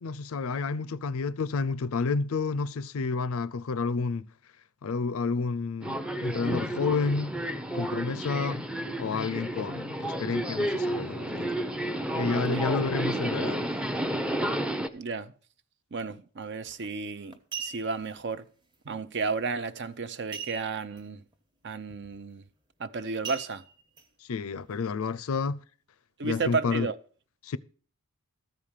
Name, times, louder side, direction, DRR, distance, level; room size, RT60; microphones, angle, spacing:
voice 1, 0.0-4.3 4.8-7.3 7.7-8.6 9.0-11.5 12.1-13.7 24.3-25.6 26.2-26.9 27.4-27.6, left 4 dB, 65° left, 0.5 m, -30 dB
Subway metro underground, 5.8-14.9, right 1 dB, 5° right, 0.6 m, -31 dB
voice 2, 12.4-12.7 14.9-15.3 15.9-18.4 18.9-21.2 21.6-22.4 22.8-23.6 26.2-26.9, right 4 dB, 50° right, 0.7 m, -33 dB
sound 1, 16.7-16.9 17.3-18.1 20.3-21.0 21.3-21.4 21.9-22.2 23.2-24.0 24.6-24.7, right 6 dB, 20° right, 1.1 m, -39 dB
13.5 x 5.0 x 7.3 m
head